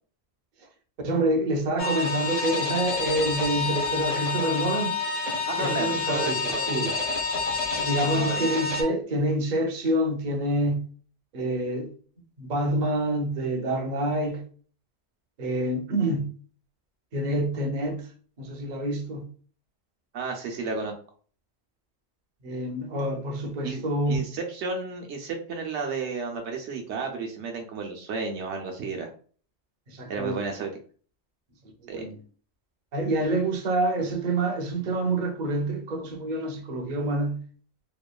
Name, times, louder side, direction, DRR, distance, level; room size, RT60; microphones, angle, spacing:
voice 1, 1.0-4.9 5.6-7.0 7.8-10.9 11.3-11.9 12.4-14.4 15.4-16.3 17.1-18.1 18.4-19.3 22.4-24.2 29.9-30.4 31.8-32.2 32.9-37.4, right 1 dB, 50° right, 0.7 m, -27 dB
sound 1, 1.8-8.8, left 4 dB, 45° left, 0.5 m, -28 dB
voice 2, 5.5-6.8 8.1-8.7 20.1-20.9 23.6-23.8 24.1-29.1 30.1-30.7 31.9-32.1, right 4 dB, 80° right, 0.9 m, -32 dB
2.9 x 2.2 x 2.3 m
omnidirectional pair, 1.2 m